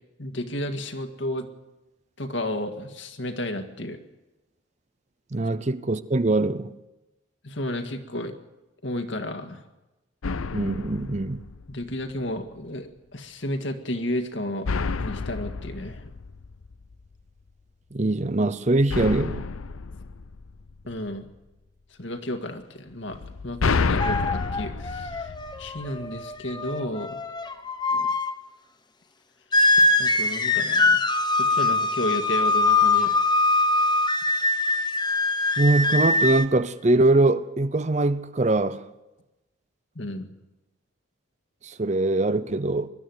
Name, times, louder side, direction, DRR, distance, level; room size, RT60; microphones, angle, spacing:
voice 1, 0.2-1.5 2.2-4.0 7.4-8.3 8.8-9.6 11.7-14.7 15.0-16.0 20.9-21.2 22.0-23.2 23.4-25.3 25.6-27.2 30.0-31.0 31.4-33.1 40.0-40.3, left 1 dB, 60° left, 2.0 m, -32 dB
voice 2, 5.3-6.7 10.5-11.4 17.9-19.5 28.0-28.1 35.6-38.9 41.6-42.9, right 2 dB, 35° right, 0.6 m, -22 dB
sound 1, 10.2-12.1 14.6-17.1 18.9-21.2 23.1-26.2, left 4 dB, 85° left, 0.7 m, -30 dB
sound 2, 24.0-28.3 29.5-36.5, left 2 dB, 20° left, 1.0 m, -23 dB
21.5 x 12.5 x 9.6 m
head